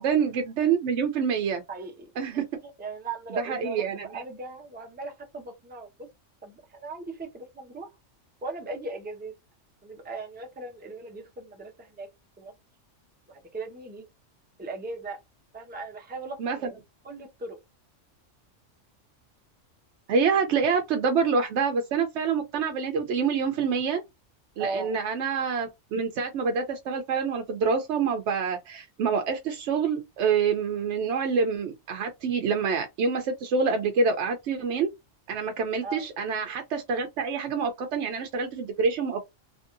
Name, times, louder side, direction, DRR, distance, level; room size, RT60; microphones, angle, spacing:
voice 1, 0.0-1.6 2.2-2.4 3.4-4.2 16.4-16.7 20.1-24.0 24.6-34.9 35.3-39.2, right 5 dB, 70° right, 0.8 m, -26 dB
voice 2, 1.7-2.1 2.6-6.1 6.4-7.9 8.4-9.3 9.8-12.1 12.4-12.5 13.3-14.1 14.6-15.2 15.5-16.7 17.0-17.6 24.6-25.0 35.8-36.1, right 3 dB, 10° right, 0.4 m, -38 dB
2.9 x 2.6 x 2.5 m
omnidirectional pair, 1.3 m